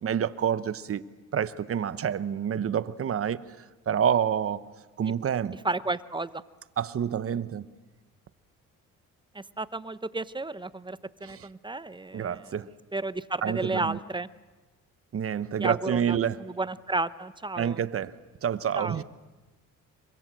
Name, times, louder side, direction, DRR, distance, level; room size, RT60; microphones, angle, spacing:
voice 1, 0.0-1.0 1.3-3.5 3.9-4.6 5.0-5.6 6.8-7.7 11.2-11.5 12.1-12.7 13.4-14.0 15.1-16.5 17.6-19.0, right 8 dB, 50° right, 1.1 m, -28 dB
voice 2, 5.6-6.4 9.3-12.4 12.9-14.3 15.6-17.8 18.7-19.0, right 3 dB, 15° right, 0.8 m, -32 dB
27.0 x 23.5 x 7.7 m
cardioid pair, 90°, 30 cm